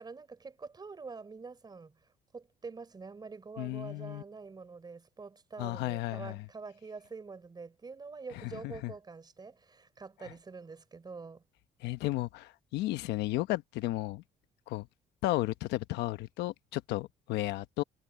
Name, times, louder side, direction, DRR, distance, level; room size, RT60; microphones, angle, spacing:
voice 1, 0.0-2.0 2.3-11.4, right 4 dB, 25° right, 3.9 m, -46 dB
voice 2, 3.6-4.2 5.6-6.4 8.4-8.9 10.2-10.3 11.8-14.2 14.7-14.9 15.2-17.8, left 17 dB, 90° left, 1.1 m, -34 dB
cardioid pair, 110°, 17 cm